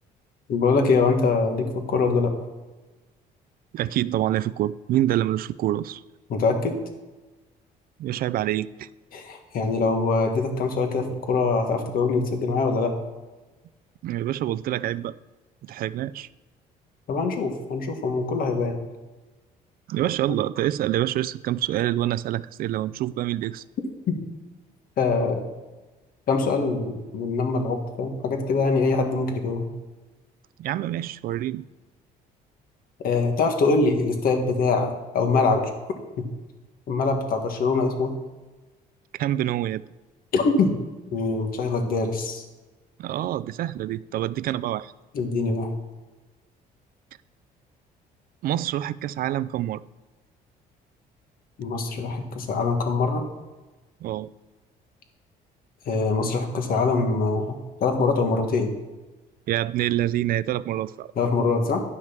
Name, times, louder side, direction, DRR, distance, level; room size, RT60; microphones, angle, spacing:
voice 1, 0.5-2.3 6.3-6.8 9.1-12.9 17.1-18.8 24.1-24.2 25.0-25.4 26.3-29.7 33.0-35.7 36.9-38.1 40.3-40.8 41.1-42.4 45.1-45.7 51.6-53.2 55.9-58.7 61.2-61.8, left 4 dB, 60° left, 5 dB, 1.7 m, -23 dB
voice 2, 3.7-6.0 8.0-8.9 14.0-15.1 15.6-16.3 19.9-23.6 30.6-31.6 39.1-39.8 43.0-44.9 48.4-49.8 54.0-54.3 59.5-61.1, right 13 dB, 60° right, 16 dB, 0.4 m, -26 dB
10.5 x 6.2 x 5.8 m, 1.2 s
cardioid pair, 110°, 17 cm